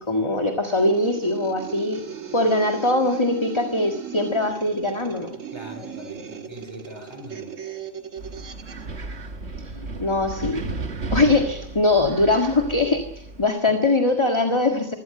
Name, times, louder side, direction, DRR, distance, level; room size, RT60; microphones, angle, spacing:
voice 1, 0.1-2.0 2.3-5.3 9.7-10.6 11.1-13.0 13.4-15.0, left 2 dB, 20° left, 4 dB, 1.8 m, -21 dB
sound 1, 0.7-8.9, right 8 dB, 80° right, 1.9 m, -37 dB
voice 2, 5.5-7.6 13.7-13.8, equal, 20° right, 6 dB, 5.1 m, -41 dB
Wind, 8.2-13.4, right 3 dB, 55° right, 1.9 m, -34 dB
25.0 x 17.0 x 7.7 m, 0.76 s
omnidirectional pair, 1.3 m